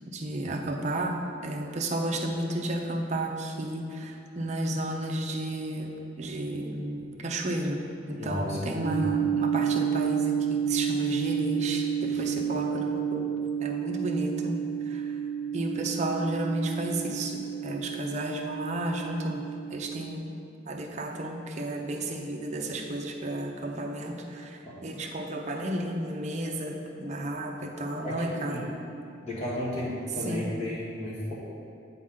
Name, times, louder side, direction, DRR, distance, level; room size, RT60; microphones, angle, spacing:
voice 1, 0.1-13.3 13.6-14.6 14.8-15.2 15.5-19.4 19.7-20.3 20.7-28.7 30.3-30.6, right 1 dB, 35° right, 1 dB, 0.6 m, -32 dB
voice 2, 8.2-9.0 24.6-24.8 28.0-28.7 29.2-31.3, left 1 dB, 35° left, -6 dB, 1.4 m, -33 dB
sound 1, 8.8-20.2, right 8 dB, 80° right, 0.7 m, -30 dB
9.0 x 4.2 x 3.7 m, 2.6 s
head